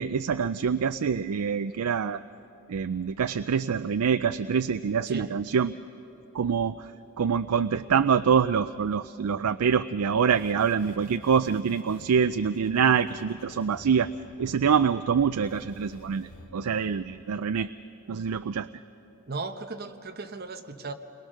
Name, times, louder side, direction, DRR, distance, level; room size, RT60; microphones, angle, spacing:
voice 1, 0.0-2.2 2.7-5.8 6.3-6.9 7.2-14.1 14.4-17.7 18.1-18.7, right 6 dB, 85° right, 11 dB, 0.4 m, -25 dB
sound 1, 10.3-17.2, left 1 dB, 80° left, 2.0 m, -49 dB
voice 2, 19.3-20.9, right 3 dB, 45° right, 6 dB, 1.1 m, -36 dB
28.5 x 22.0 x 6.5 m, 3.0 s
head